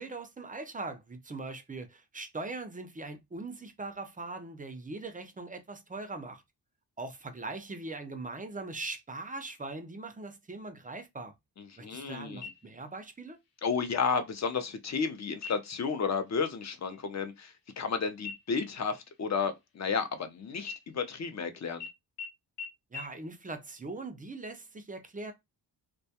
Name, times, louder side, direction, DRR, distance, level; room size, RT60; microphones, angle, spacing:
voice 1, 0.0-6.4 7.0-11.3 11.8-13.4 22.9-25.3, right 3 dB, 20° right, 0.3 m, -41 dB
voice 2, 11.8-12.4 13.6-21.8, left 5 dB, 40° left, 0.5 m, -32 dB
sound 1, 12.4-13.1 13.5-13.6 14.1-14.6 15.3-15.9 16.3-16.5 16.8-17.9 18.2-20.2 20.6-21.4 21.8-21.9 22.2-22.3 22.6-22.7 22.9-23.0, left 6 dB, 75° left, 0.8 m, -45 dB
2.2 x 2.2 x 2.7 m
wide cardioid pair, 125°, 41 cm